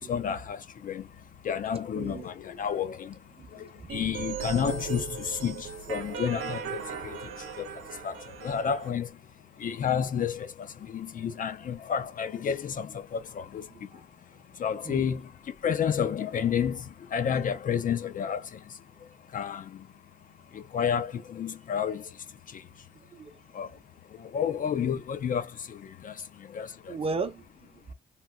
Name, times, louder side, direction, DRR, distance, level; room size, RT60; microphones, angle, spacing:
voice 1, 0.1-1.0 1.4-3.1 3.9-7.2 7.6-7.7 8.0-8.1 8.4-9.1 9.6-10.5 10.9-13.6 14.6-15.2 15.6-16.8 17.1-18.4 19.3-19.6 20.7-22.0 23.5-23.7 24.3-25.8 26.0-26.1 26.5-26.7, left 8 dB, 45° left, 0.4 m, -30 dB
voice 2, 3.4-3.9 14.9-15.1 23.1-23.3 26.9-27.4, right 4 dB, 30° right, 0.6 m, -34 dB
sound 1, 3.9-8.9, right 7 dB, 90° right, 0.8 m, -38 dB
3.0 x 2.9 x 2.2 m
cardioid pair, 90°, 20 cm